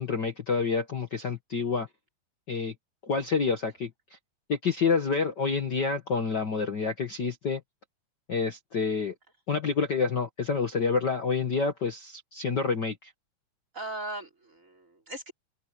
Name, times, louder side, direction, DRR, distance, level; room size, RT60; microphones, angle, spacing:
voice 1, 0.0-1.9 2.5-2.7 3.0-3.9 4.5-7.6 8.3-9.2 9.5-13.1, left 5 dB, 40° left, 1.9 m, -28 dB
voice 2, 13.7-15.3, right 1 dB, 25° right, 3.5 m, -38 dB
open air
omnidirectional pair, 3.4 m